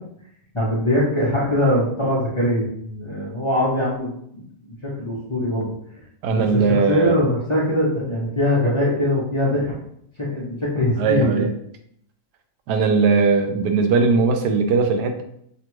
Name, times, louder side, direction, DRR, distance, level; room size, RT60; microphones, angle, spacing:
voice 1, 0.5-4.4 4.8-5.7 6.3-9.7 10.2-11.4, left 1 dB, 35° left, -7 dB, 0.4 m, -22 dB
voice 2, 6.2-7.2 11.0-11.5 12.7-15.2, right 4 dB, 75° right, 6 dB, 1.1 m, -19 dB
5.9 x 2.3 x 3.0 m, 0.70 s
omnidirectional pair, 1.9 m